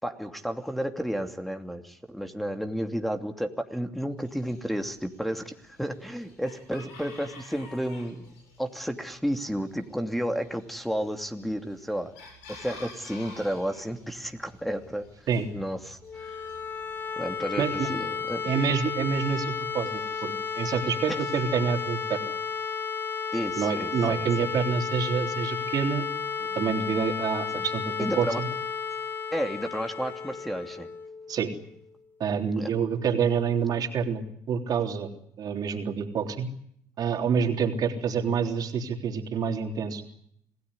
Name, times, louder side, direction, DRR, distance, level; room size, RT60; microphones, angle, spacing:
voice 1, 0.0-8.2 8.6-12.1 12.5-15.0 15.5-16.4 17.2-18.5 21.1-21.2 23.3-24.3 27.5-27.6 28.0-28.4 29.3-30.9 32.5-32.7, equal, ahead, 6 dB, 2.7 m, -32 dB
Chicken rooster, 4.2-20.8, left 3 dB, 85° left, 7.4 m, -52 dB
sound 1, 16.0-31.8, left 6 dB, 30° left, 2.8 m, -33 dB
voice 2, 17.6-17.9 18.4-22.3 23.6-26.0 26.4-28.5 31.3-31.5 32.2-35.1 35.4-36.5 37.0-40.0, right 6 dB, 60° right, 5 dB, 3.5 m, -27 dB
27.0 x 17.0 x 9.8 m, 0.71 s
hypercardioid pair, 60°, 8 cm